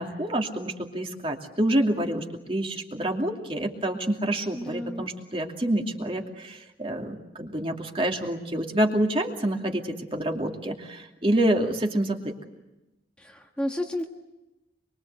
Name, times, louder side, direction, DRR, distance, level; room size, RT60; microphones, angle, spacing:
voice 1, 0.0-9.8 10.1-12.3, right 1 dB, 30° right, 3 dB, 2.7 m, -27 dB
voice 2, 4.5-5.1 13.2-14.1, left 1 dB, 5° left, 2 dB, 1.5 m, -32 dB
25.5 x 24.0 x 8.2 m, 1.0 s
head